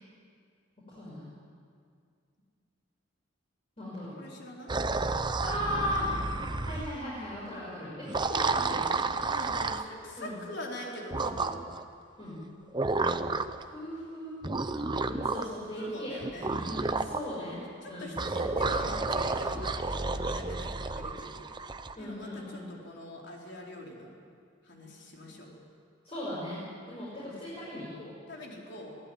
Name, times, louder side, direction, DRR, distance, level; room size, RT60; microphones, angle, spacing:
voice 1, 0.9-1.3 3.8-4.2 5.4-6.1 6.6-9.2 10.2-10.4 12.2-12.4 13.6-14.3 15.0-17.6 17.9-18.1 18.3-18.7 22.0-22.7 26.0-28.1, left 1 dB, 30° left, -8 dB, 5.8 m, -37 dB
voice 2, 4.2-4.7 9.3-11.6 14.7-14.9 15.7-16.6 17.8-21.5 22.0-24.1 24.6-25.5 28.3-29.0, left 1 dB, 60° left, -1 dB, 4.4 m, -43 dB
sound 1, 4.7-7.0 8.0-9.9 11.1-11.8 12.7-13.6 14.4-15.6 16.2-17.2 18.2-21.9, right 3 dB, 25° right, 0.7 m, -31 dB
23.0 x 16.0 x 9.3 m, 2.2 s
head